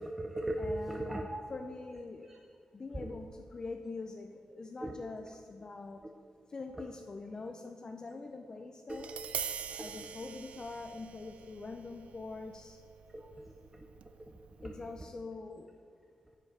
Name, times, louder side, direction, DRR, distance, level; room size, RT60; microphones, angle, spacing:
voice 1, 0.0-1.4 2.9-3.1 4.8-5.0 8.9-9.1 9.7-10.1 13.1-13.9 14.3-14.4 14.6-14.7 15.0-15.1, right 1 dB, 10° right, 2 dB, 0.6 m, -39 dB
voice 2, 0.6-1.2 1.5-2.3 2.7-6.1 6.5-9.1 9.8-12.8 14.6-15.7, left 3 dB, 35° left, 5 dB, 0.5 m, -44 dB
Tap, 8.9-15.0, right 7 dB, 70° right, 0.4 m, -45 dB
7.5 x 7.4 x 5.4 m, 2.2 s
wide cardioid pair, 125°, 2 cm